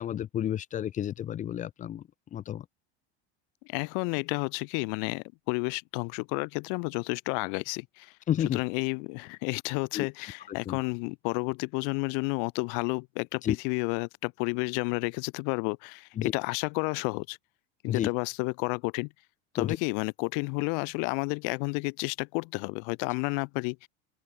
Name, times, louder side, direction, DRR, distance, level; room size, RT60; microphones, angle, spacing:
voice 1, 0.0-2.0 2.3-2.7 8.3-8.6 9.9-10.1 10.5-10.8 13.4-13.6 16.2-16.3 17.9-18.1 19.6-19.8, left 10 dB, 25° left, 0.4 m, -30 dB
voice 2, 3.7-17.4 17.8-19.1 19.5-23.9, left 40 dB or more, 65° left, 0.7 m, -31 dB
open air
supercardioid pair, 140°, 34 cm